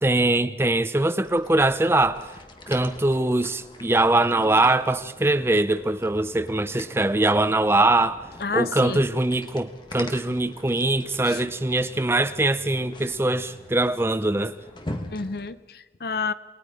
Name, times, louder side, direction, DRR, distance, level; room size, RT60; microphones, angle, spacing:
voice 1, 0.0-2.2 2.7-8.2 8.5-14.5, right 2 dB, 15° right, 0.6 m, -22 dB
sound 1, 1.2-15.5, left 1 dB, 25° left, 1.4 m, -43 dB
voice 2, 8.4-9.1 11.2-11.4 15.1-16.3, left 4 dB, 60° left, 0.7 m, -29 dB
28.5 x 20.5 x 5.0 m
head